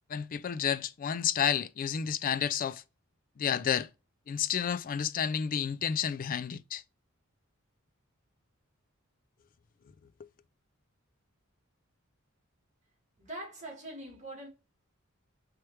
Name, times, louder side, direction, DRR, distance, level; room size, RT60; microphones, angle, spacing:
voice 1, 0.1-2.8 3.4-3.9 4.3-6.8, left 8 dB, 40° left, 0.3 m, -30 dB
voice 2, 13.2-14.5, right 1 dB, 35° right, 1.9 m, -43 dB
4.6 x 3.3 x 3.1 m
head